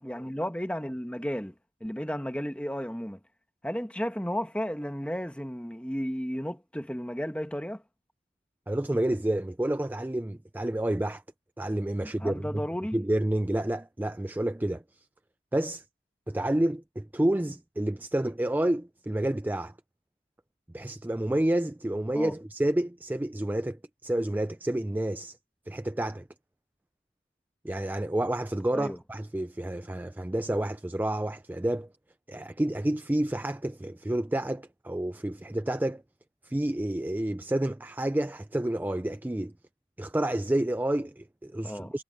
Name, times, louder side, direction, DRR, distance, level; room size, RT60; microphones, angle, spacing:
voice 1, 0.0-1.5 1.8-3.2 3.6-7.8 12.0-13.0 22.1-22.3 28.7-29.0 41.6-41.9, equal, 5° left, 1.4 m, -33 dB
voice 2, 8.7-11.2 11.6-12.6 12.9-15.1 15.5-15.8 16.3-19.7 20.7-25.4 25.7-26.3 27.6-31.9 32.3-36.0 36.4-39.5 40.0-42.0, right 1 dB, 10° right, 0.4 m, -29 dB
head